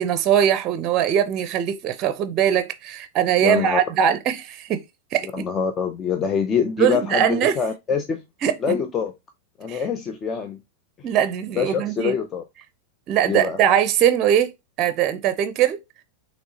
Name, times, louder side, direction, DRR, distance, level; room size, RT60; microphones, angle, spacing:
voice 1, 0.0-4.8 5.1-5.4 6.8-7.5 8.4-8.6 9.7-9.8 11.0-12.1 13.1-14.5 14.8-15.8, right 9 dB, 35° right, 0.5 m, -21 dB
voice 2, 3.4-3.8 5.3-8.2 8.6-9.1 9.6-10.6 11.6-12.4 13.3-13.6, left 6 dB, 25° left, 0.5 m, -25 dB
6.0 x 3.0 x 2.8 m
figure-of-eight pair, 90°, 0 cm